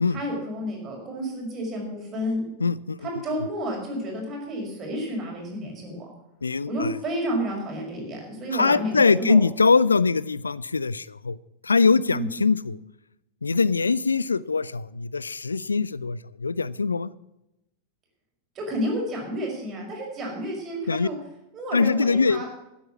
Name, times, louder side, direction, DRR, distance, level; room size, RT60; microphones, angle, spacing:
voice 1, 0.1-2.4 3.0-6.1 6.7-9.4 12.1-12.3 18.6-21.2 21.5-22.5, equal, 30° right, 0 dB, 5.6 m, -30 dB
voice 2, 2.6-3.0 6.4-6.9 8.5-11.4 11.6-12.8 13.4-17.1 20.9-21.1 21.7-22.4, left 4 dB, 75° left, 21 dB, 0.3 m, -22 dB
12.5 x 9.3 x 6.0 m, 0.91 s
figure-of-eight pair, 90°, 0 cm